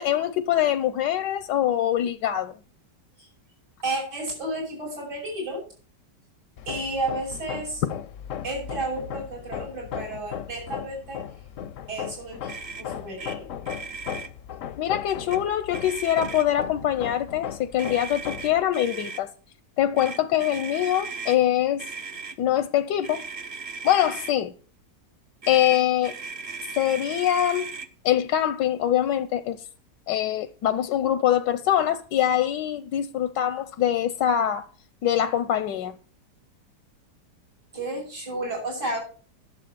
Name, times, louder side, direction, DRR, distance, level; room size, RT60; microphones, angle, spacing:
voice 1, 0.0-2.5 14.8-19.3 19.8-21.8 22.4-23.2 23.8-24.5 25.5-26.2 26.7-27.7 28.0-29.6 30.1-34.7 35.0-35.9, left 11 dB, 85° left, 1.4 m, -24 dB
voice 2, 3.8-5.6 6.7-7.8 8.4-11.2 11.9-13.5 37.7-39.0, right 2 dB, 75° right, 7.2 m, -32 dB
Hammer, 6.6-18.6, left 9 dB, 60° left, 0.9 m, -37 dB
Motor vehicle (road), 12.5-12.9 13.2-13.4 13.6-14.3 15.1-15.4 15.7-16.6 17.8-19.2 20.0-21.4 21.8-22.4 23.0-24.3 25.4-27.9, right 4 dB, 40° right, 0.9 m, -37 dB
11.5 x 7.4 x 6.9 m
omnidirectional pair, 1.8 m